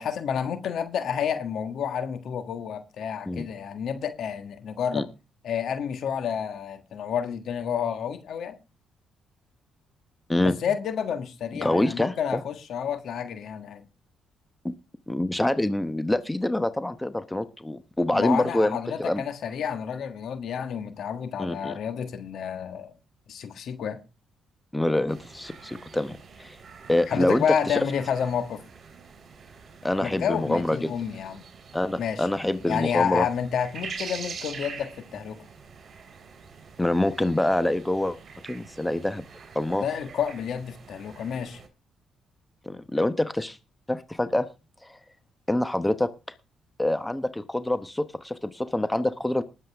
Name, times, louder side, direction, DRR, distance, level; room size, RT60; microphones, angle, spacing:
voice 1, 0.0-5.1 5.4-8.6 10.4-13.8 18.1-22.9 23.3-24.0 27.1-28.6 30.0-31.4 32.0-32.3 32.6-35.4 39.7-41.6, left 7 dB, 70° left, 1.5 m, -30 dB
voice 2, 11.6-12.4 15.1-19.2 21.4-21.7 24.7-26.6 26.9-27.7 29.8-30.9 31.7-33.3 36.8-38.2 38.5-39.2 39.5-39.8 42.7-43.6 43.9-44.5 44.8-45.0 45.5-46.1 46.8-49.4, left 1 dB, 10° left, 0.9 m, -26 dB
sound 1, 25.1-41.7, right 5 dB, 50° right, 3.5 m, -45 dB
19.5 x 7.7 x 3.5 m
cardioid pair, 90°, 0 cm